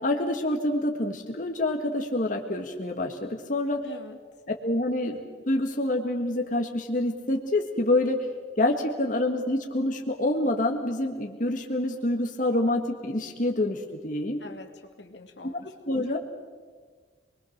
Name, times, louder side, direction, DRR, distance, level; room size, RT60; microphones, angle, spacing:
voice 1, 0.0-3.8 4.6-5.2 5.5-8.2 8.6-14.4 15.9-16.2, left 1 dB, 45° left, 3 dB, 1.7 m, -27 dB
voice 2, 3.8-4.2 14.4-15.7, left 2 dB, 75° left, 5 dB, 2.4 m, -44 dB
27.0 x 21.5 x 6.6 m, 1.5 s
head